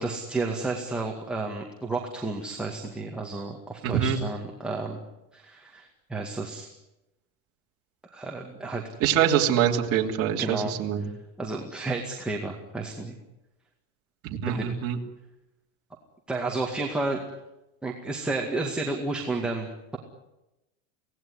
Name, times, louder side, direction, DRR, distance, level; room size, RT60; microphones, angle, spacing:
voice 1, 0.0-5.0 5.3-6.7 8.1-8.8 10.4-10.7 11.0-11.1 11.4-13.2 14.5-14.6 16.3-17.3 17.8-20.0, right 3 dB, ahead, -1 dB, 2.1 m, -31 dB
voice 2, 3.8-4.2 9.0-11.1 14.2-15.0, right 9 dB, 35° right, -1 dB, 3.0 m, -24 dB
25.0 x 18.0 x 9.7 m, 0.96 s
supercardioid pair, 155°, 39 cm